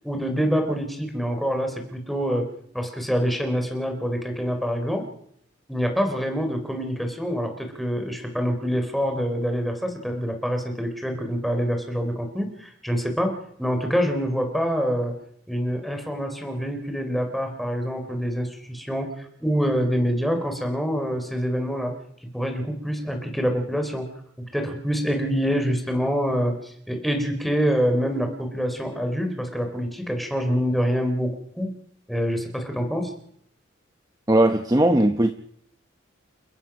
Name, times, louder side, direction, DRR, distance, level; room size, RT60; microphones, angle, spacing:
voice 1, 0.0-2.5 2.7-5.1 5.7-15.2 15.5-21.9 22.3-24.1 24.4-31.7 32.1-33.1, equal, ahead, 3.7 m, -26 dB
voice 2, 34.3-35.3, right 1 dB, 20° right, 0.9 m, -18 dB
30.0 x 14.5 x 6.0 m
head